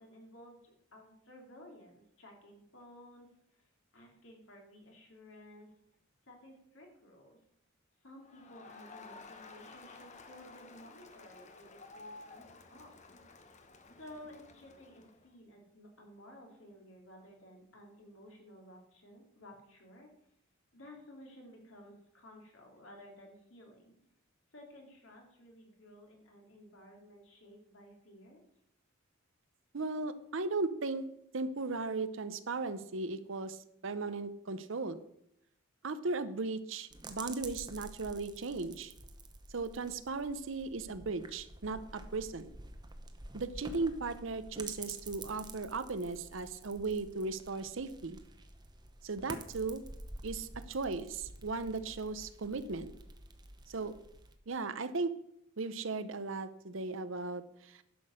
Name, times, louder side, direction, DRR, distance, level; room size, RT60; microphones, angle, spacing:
voice 1, 0.0-3.3 3.6-5.7 6.2-7.4 8.0-13.1 14.0-20.1 20.7-23.9 24.5-28.4, left 1 dB, 65° left, 0 dB, 2.9 m, -55 dB
Crowd, 8.2-15.3, left 3 dB, 35° left, 1.0 m, -53 dB
voice 2, 29.7-31.1 31.3-33.6 33.8-35.0 35.8-38.9 39.5-42.5 43.3-48.2 49.0-49.8 50.2-52.9 53.7-53.9 54.5-55.1 55.6-57.8, right 3 dB, 65° right, 12 dB, 0.7 m, -37 dB
sound 1, 36.9-54.3, right 2 dB, 20° right, 0.9 m, -49 dB
11.0 x 6.2 x 6.4 m, 0.75 s
head